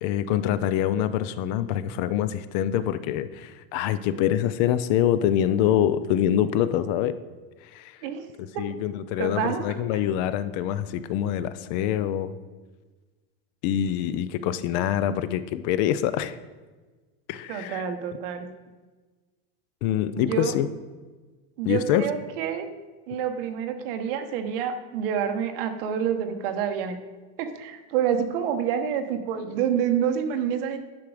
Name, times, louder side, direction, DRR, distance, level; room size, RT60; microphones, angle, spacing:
voice 1, 0.0-7.2 7.7-8.0 8.6-12.3 13.6-16.4 17.3-17.8 19.8-20.7 21.7-22.1, left 11 dB, 45° left, 14 dB, 0.4 m, -25 dB
voice 2, 9.2-9.8 14.1-14.2 17.5-18.5 20.1-20.6 21.6-22.7 23.1-27.0 27.4-30.8, right 8 dB, 65° right, 7 dB, 1.2 m, -28 dB
10.5 x 6.2 x 4.9 m, 1.3 s
cardioid pair, 175°, 30 cm